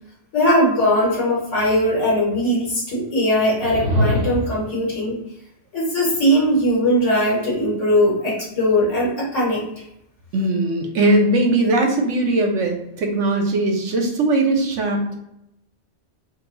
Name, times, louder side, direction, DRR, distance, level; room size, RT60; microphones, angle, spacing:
voice 1, 0.3-5.2 5.7-9.7, equal, 90° left, -5 dB, 2.0 m, -19 dB
sound 1, 3.5-4.7, equal, 40° right, 0.8 m, -22 dB
voice 2, 10.3-15.2, right 2 dB, 80° right, 3 dB, 1.2 m, -19 dB
4.5 x 2.3 x 3.8 m, 0.80 s
omnidirectional pair, 1.2 m